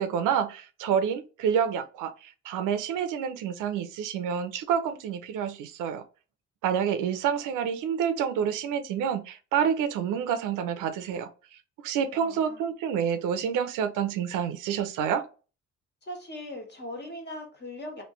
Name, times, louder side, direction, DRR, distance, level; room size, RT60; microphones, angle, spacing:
voice 1, 0.0-6.0 6.6-11.3 11.8-15.3, right 8 dB, 90° right, 0.6 m, -28 dB
voice 2, 12.1-12.7 16.0-18.0, left 1 dB, 35° left, 1.4 m, -40 dB
3.1 x 2.7 x 3.1 m
cardioid pair, 90°, 30 cm